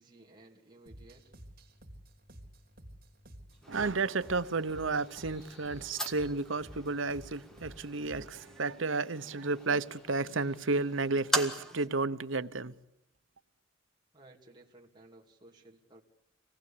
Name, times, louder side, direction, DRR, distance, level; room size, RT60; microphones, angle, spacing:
voice 1, 0.0-1.3 14.1-16.0, right 2 dB, 25° right, 2.8 m, -57 dB
sound 1, 0.9-8.5, equal, 50° right, 3.1 m, -52 dB
sound 2, 3.5-11.2, left 2 dB, 65° left, 6.1 m, -68 dB
sound 3, 3.6-11.9, right 1 dB, 5° left, 1.7 m, -41 dB
voice 2, 3.7-12.7, right 3 dB, 85° right, 1.0 m, -32 dB
26.5 x 19.0 x 8.6 m
head